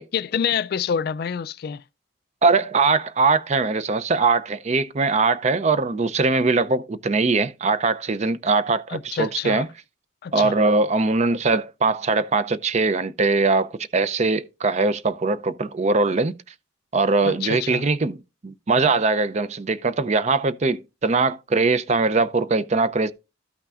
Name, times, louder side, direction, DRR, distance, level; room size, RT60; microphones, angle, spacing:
voice 1, 0.0-1.8 8.9-9.7 10.2-10.6 17.2-17.8, left 7 dB, 50° left, 0.3 m, -27 dB
voice 2, 2.4-9.7 10.3-16.4 16.9-23.1, right 3 dB, 35° right, 0.5 m, -21 dB
13.0 x 5.7 x 2.4 m
head